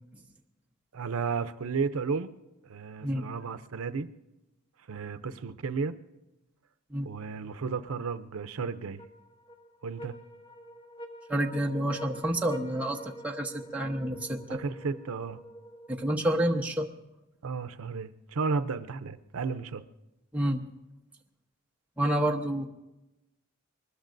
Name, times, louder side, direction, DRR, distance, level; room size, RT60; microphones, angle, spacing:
voice 1, 0.9-2.3 2.6-4.1 4.9-6.0 7.0-9.0 9.8-10.1 14.5-15.4 17.4-19.8, right 5 dB, 80° right, 12 dB, 0.6 m, -33 dB
sound 1, 9.0-16.5, equal, 25° left, 0.9 m, -46 dB
voice 2, 11.3-14.6 15.9-16.9 20.3-20.6 22.0-22.7, right 1 dB, 5° right, 1 dB, 0.9 m, -29 dB
23.5 x 20.5 x 2.6 m, 0.98 s
head